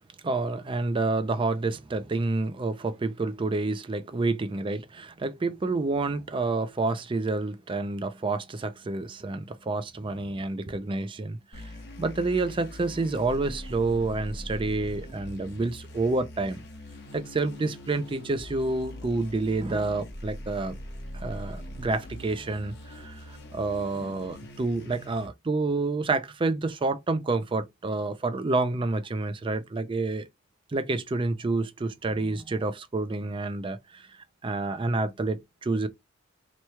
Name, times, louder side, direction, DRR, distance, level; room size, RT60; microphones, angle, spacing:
voice 1, 0.2-11.7 12.0-16.6 17.1-20.8 21.1-30.3 30.7-35.9, right 3 dB, 25° right, 0.4 m, -29 dB
sound 1, 11.5-25.3, left 1 dB, 55° left, 1.0 m, -42 dB
3.0 x 2.3 x 4.2 m
head